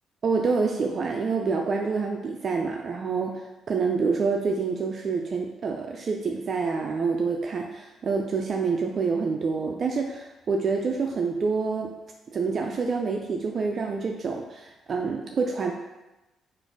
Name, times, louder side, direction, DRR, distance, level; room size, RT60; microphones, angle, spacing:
voice 1, 0.2-11.9 12.3-15.7, right 4 dB, 50° right, 2 dB, 0.4 m, -27 dB
4.2 x 2.6 x 4.7 m, 1.0 s
cardioid pair, 90°, 0 cm